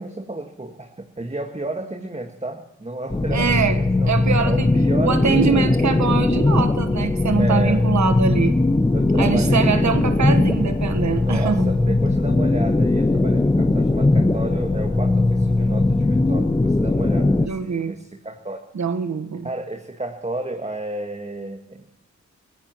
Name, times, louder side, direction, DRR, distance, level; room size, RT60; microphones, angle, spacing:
voice 1, 0.0-5.6 7.4-7.9 8.9-9.9 11.1-18.7 19.4-21.9, right 2 dB, 20° right, 3 dB, 1.8 m, -32 dB
sound 1, 3.1-17.5, left 2 dB, 15° left, 0.7 m, -19 dB
voice 2, 3.3-3.8 4.0-4.7 5.0-8.5 9.2-11.7 17.5-17.9 18.7-19.5, right 5 dB, 70° right, 9 dB, 1.5 m, -23 dB
23.5 x 16.0 x 3.1 m, 0.87 s
cardioid pair, 50°, 30 cm